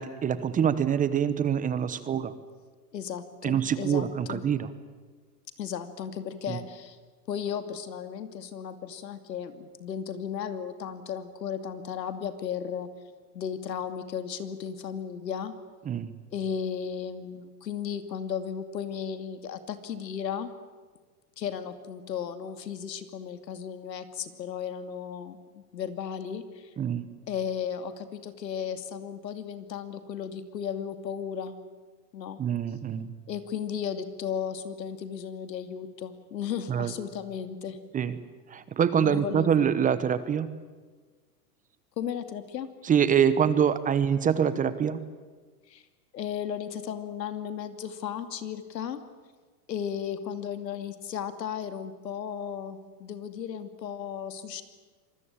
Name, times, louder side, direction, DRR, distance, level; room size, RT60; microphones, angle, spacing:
voice 1, 0.0-2.3 3.4-4.7 6.5-6.6 15.9-16.1 26.8-27.1 32.4-33.1 36.7-36.9 37.9-38.2 38.5-40.5 42.8-45.0, right 8 dB, 15° right, 14 dB, 0.9 m, -25 dB
voice 2, 2.9-4.4 5.6-7.0 7.3-12.9 13.3-15.5 16.3-20.5 21.4-26.7 27.3-31.6 32.1-32.4 33.3-37.8 39.0-39.7 42.0-42.7 45.7-45.8 46.1-49.0 49.7-54.6, left 8 dB, 90° left, 10 dB, 2.7 m, -35 dB
25.5 x 21.0 x 8.9 m, 1.4 s
hypercardioid pair, 135°, 48 cm